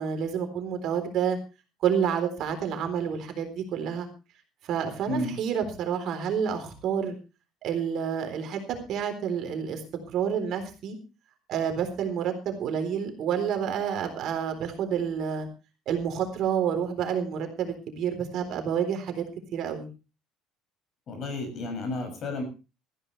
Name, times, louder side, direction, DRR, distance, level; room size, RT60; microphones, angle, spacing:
voice 1, 0.0-1.4 1.8-4.1 4.6-7.2 7.6-9.8 10.1-11.0 11.5-15.5 15.9-19.2 19.5-19.9, right 7 dB, 45° right, 6 dB, 3.8 m, -29 dB
voice 2, 21.1-22.4, left 2 dB, 35° left, 6 dB, 6.7 m, -32 dB
19.5 x 14.5 x 3.3 m, 0.32 s
cardioid pair, 175°, 0 cm